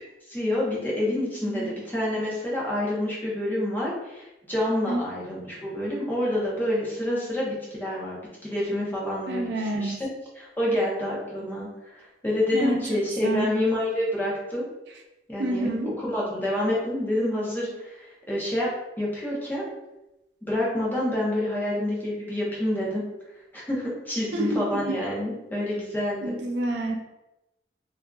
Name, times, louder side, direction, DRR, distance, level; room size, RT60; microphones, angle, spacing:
voice 1, 0.3-8.2 8.4-10.1 10.4-14.6 15.3-15.7 16.0-18.7 19.0-19.7 20.4-23.0 23.5-26.4, left 1 dB, 10° left, -5 dB, 0.6 m, -28 dB
voice 2, 9.3-10.0 12.5-12.9 13.2-13.5 15.4-15.9 24.3-25.0 26.2-27.0, right 1 dB, 70° right, 1 dB, 0.4 m, -28 dB
2.6 x 2.4 x 2.2 m, 0.95 s
head